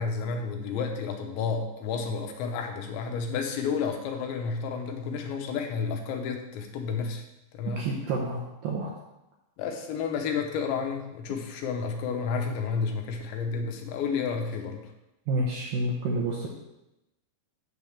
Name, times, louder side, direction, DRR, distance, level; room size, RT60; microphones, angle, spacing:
voice 1, 0.0-7.2 7.6-7.9 9.6-14.9, left 5 dB, 85° left, 3 dB, 3.2 m, -31 dB
voice 2, 7.8-8.9 15.3-16.5, right 2 dB, 75° right, -2 dB, 2.1 m, -29 dB
9.9 x 3.4 x 7.0 m, 0.90 s
omnidirectional pair, 5.1 m